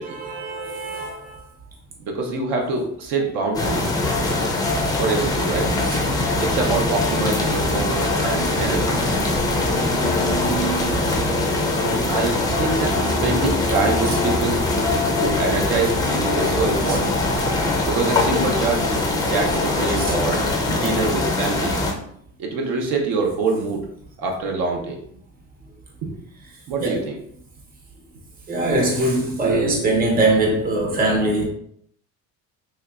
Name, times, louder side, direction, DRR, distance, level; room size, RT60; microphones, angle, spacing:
voice 1, 0.0-1.4 3.9-4.1 5.8-6.0 11.5-11.6 14.1-14.2 16.9-17.0 20.0-20.1 26.8-27.0 28.5-31.5, right 2 dB, 25° right, 0.8 m, -22 dB
voice 2, 2.1-4.0 5.0-5.7 6.4-9.3 11.8-14.6 15.2-17.2 17.9-19.0 19.3-21.8 22.4-23.8 24.2-25.0 26.0-26.2 26.7-27.2, right 3 dB, 70° right, 0.8 m, -25 dB
sound 1, 3.5-21.9, left 2 dB, 10° left, 0.3 m, -22 dB
3.2 x 2.8 x 2.4 m
cardioid pair, 135°, 36 cm